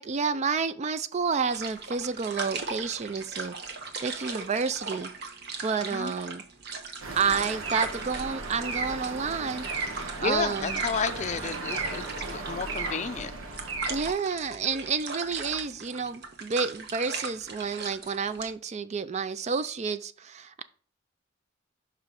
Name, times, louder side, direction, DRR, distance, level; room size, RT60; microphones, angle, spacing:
voice 1, 0.0-3.6 4.0-5.1 5.6-6.4 7.2-10.8 13.9-20.6, right 5 dB, 35° right, 0.4 m, -30 dB
sound 1, 1.5-18.5, right 4 dB, 55° right, 1.1 m, -39 dB
voice 2, 5.8-6.1 10.2-13.3, left 5 dB, 35° left, 0.4 m, -32 dB
sound 2, 7.0-14.1, right 3 dB, 80° right, 1.4 m, -35 dB
5.6 x 5.0 x 5.2 m
head